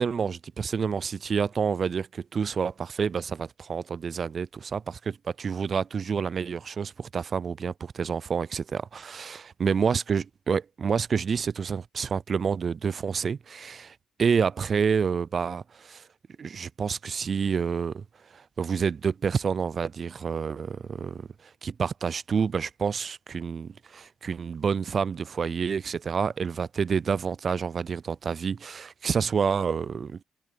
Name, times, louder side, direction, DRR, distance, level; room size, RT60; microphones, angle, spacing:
voice 1, 0.0-16.1 16.4-18.0 18.3-30.2, right 6 dB, 45° right, 0.3 m, -28 dB
cardioid pair, 90°, 0 cm